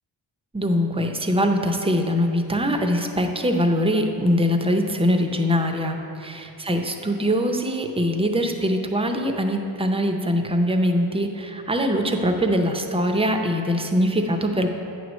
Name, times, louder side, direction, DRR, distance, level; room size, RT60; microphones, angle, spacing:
voice 1, 0.5-14.7, equal, 10° right, 4 dB, 0.6 m, -22 dB
8.6 x 3.2 x 6.2 m, 2.8 s
cardioid pair, 65°, 50 cm